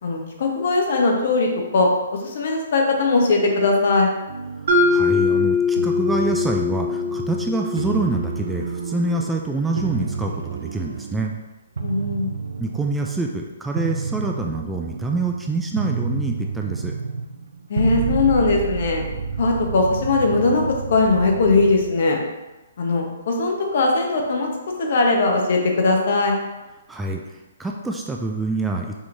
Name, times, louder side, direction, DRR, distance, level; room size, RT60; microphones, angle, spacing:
voice 1, 0.0-1.9 2.2-4.1 11.8-12.3 17.7-19.0 19.4-20.6 20.9-22.2 22.8-24.5 24.8-26.3, left 3 dB, 60° left, 1 dB, 0.9 m, -19 dB
sound 1, 4.3-5.5 5.7-7.5 7.7-9.4 9.7-11.3 11.8-13.3 13.7-22.0, right 5 dB, 80° right, 0.4 m, -30 dB
Mallet percussion, 4.7-8.7, left 4 dB, 60° right, 0.8 m, -22 dB
voice 2, 4.9-11.3 12.6-16.9 26.9-29.0, right 2 dB, 5° right, 1 dB, 0.3 m, -26 dB
5.4 x 3.0 x 2.6 m, 1.1 s
hypercardioid pair, 145°, 0 cm